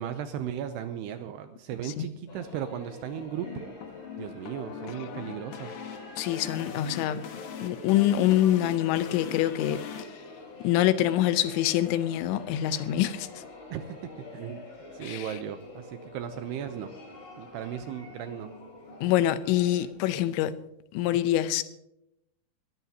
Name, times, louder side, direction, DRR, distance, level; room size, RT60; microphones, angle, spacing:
voice 1, 0.0-3.7 4.2-5.8 13.7-14.7 14.9-16.9 17.4-18.5, right 9 dB, 80° right, 2.4 m, -36 dB
sound 1, 2.3-19.9, left 2 dB, 45° left, 5.7 m, -46 dB
sound 2, 3.2-10.0, left 7 dB, 70° left, 1.9 m, -41 dB
voice 2, 6.2-7.2 7.6-9.8 10.6-13.3 15.0-15.2 19.0-20.6 20.9-21.6, left 12 dB, 85° left, 3.1 m, -25 dB
21.5 x 15.0 x 2.8 m
omnidirectional pair, 5.3 m